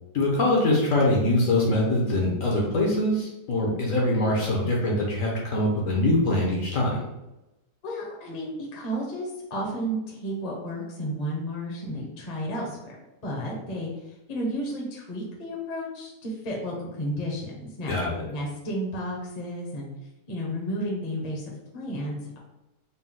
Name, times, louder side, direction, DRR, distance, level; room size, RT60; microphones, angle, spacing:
voice 1, 0.1-7.0 17.9-18.2, left 1 dB, 60° left, -2 dB, 1.0 m, -23 dB
voice 2, 7.8-13.0 13.2-18.0 18.3-19.9 20.3-22.4, equal, 30° left, -3 dB, 0.7 m, -32 dB
4.2 x 2.2 x 3.7 m, 0.95 s
omnidirectional pair, 1.8 m